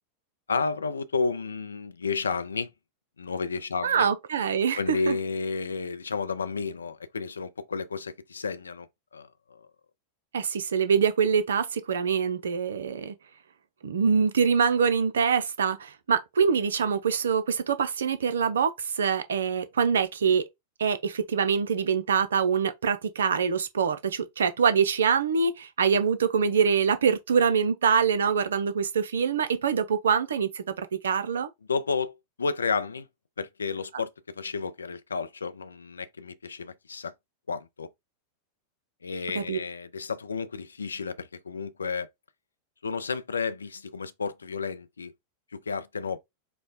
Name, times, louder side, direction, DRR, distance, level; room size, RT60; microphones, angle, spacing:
voice 1, 0.5-2.7 3.2-4.1 4.8-8.9 9.1-9.6 31.7-33.1 33.4-37.1 37.5-37.9 39.0-42.1 42.8-45.1 45.5-46.2, left 4 dB, 75° left, 0.5 m, -31 dB
voice 2, 3.8-5.2 10.3-13.1 13.8-20.4 20.8-30.6 31.0-31.5 39.4-39.6, right 6 dB, 65° right, 0.6 m, -24 dB
4.5 x 2.2 x 4.0 m
figure-of-eight pair, 90°, 0 cm